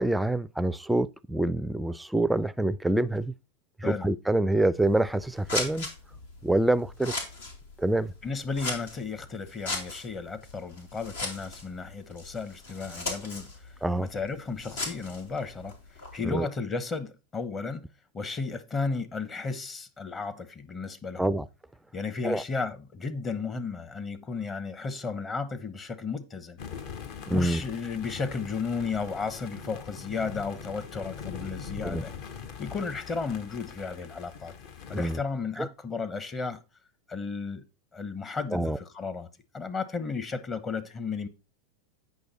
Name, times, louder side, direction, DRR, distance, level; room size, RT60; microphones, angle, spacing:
voice 1, 0.0-3.3 3.8-5.9 6.4-7.1 7.8-8.1 13.8-14.1 16.2-16.5 21.2-21.5 22.2-22.4 27.2-27.6 31.8-32.0 34.9-35.2 35.6-35.7 38.5-38.8, right 1 dB, 5° right, 0.4 m, -26 dB
Scissors, 4.7-16.2, left 2 dB, 85° left, 2.5 m, -38 dB
voice 2, 8.2-13.5 14.0-15.7 16.1-17.8 18.1-21.3 21.9-26.6 27.3-32.1 32.6-34.5 34.9-36.6 37.1-37.6 37.9-39.3 39.5-41.3, left 4 dB, 25° left, 0.9 m, -34 dB
sound 1, 26.6-35.2, left 6 dB, 60° left, 1.3 m, -42 dB
8.5 x 5.5 x 4.1 m
hypercardioid pair, 95°, 0 cm